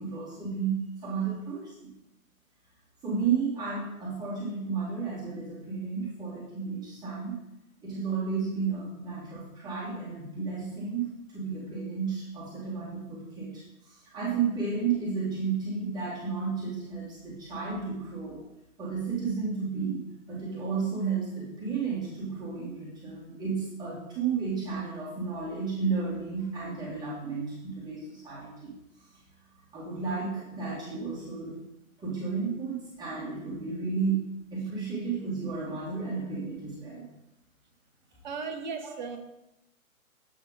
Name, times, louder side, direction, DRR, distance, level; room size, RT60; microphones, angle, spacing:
voice 1, 0.0-1.9 3.0-7.4 7.8-18.4 18.8-28.7 29.7-31.6 32.0-37.1 38.8-38.9, right 5 dB, 10° right, -7 dB, 1.3 m, -32 dB
voice 2, 38.2-39.2, right 5 dB, 35° right, 6 dB, 0.7 m, -36 dB
7.3 x 5.6 x 3.7 m, 0.88 s
figure-of-eight pair, 140°, 43 cm